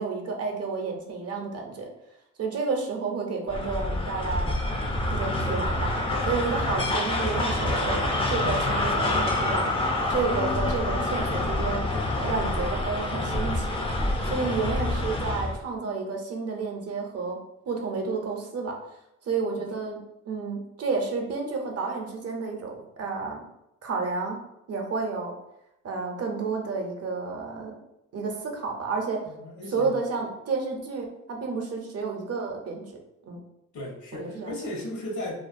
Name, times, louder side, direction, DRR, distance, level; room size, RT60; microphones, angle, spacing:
voice 1, 0.0-1.9 2.4-4.5 5.1-5.9 6.2-8.0 8.3-9.7 10.1-11.8 12.2-13.7 14.2-17.4 17.7-18.8 19.2-20.0 20.3-23.5 23.8-24.4 24.7-25.3 25.8-27.8 28.1-29.2 29.7-32.9 33.3-33.4 34.1-34.5, right 4 dB, 50° right, 1 dB, 0.6 m, -30 dB
sound 1, 3.5-15.6, left 1 dB, 20° left, 0.4 m, -27 dB
voice 2, 29.3-30.0 33.7-35.4, left 1 dB, 70° left, -1 dB, 0.9 m, -35 dB
2.4 x 2.1 x 2.4 m, 0.87 s
cardioid pair, 85°, 31 cm